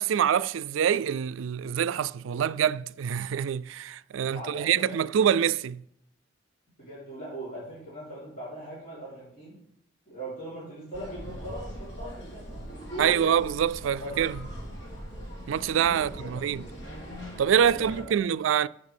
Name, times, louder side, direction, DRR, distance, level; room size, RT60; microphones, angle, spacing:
voice 1, 0.0-5.8 13.0-14.3 15.5-16.6 17.4-18.7, right 8 dB, 85° right, 0.3 m, -25 dB
voice 2, 4.2-5.1 6.8-9.6 10.1-13.2 13.8-14.3 15.8-16.4 17.4-18.1, right 1 dB, 40° left, 3.7 m, -40 dB
sound 1, 10.9-18.0, equal, 65° left, 2.5 m, -41 dB
12.0 x 6.7 x 3.5 m
head